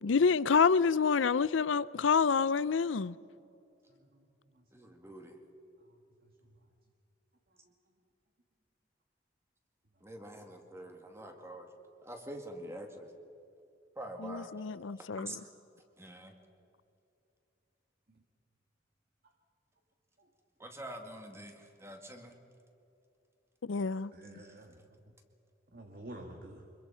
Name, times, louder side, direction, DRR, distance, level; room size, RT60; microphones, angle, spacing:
voice 1, 0.0-3.1 14.2-15.3 23.6-24.1, left 5 dB, 75° left, 0.5 m, -27 dB
voice 2, 4.7-5.4 10.0-11.7 12.0-13.1 14.0-14.5 15.0-15.4 16.0-16.3 20.6-22.3 24.4-24.5, right 1 dB, 15° right, 2.2 m, -46 dB
voice 3, 24.1-24.8 25.7-26.6, right 1 dB, 50° right, 1.8 m, -49 dB
25.0 x 22.0 x 5.7 m
head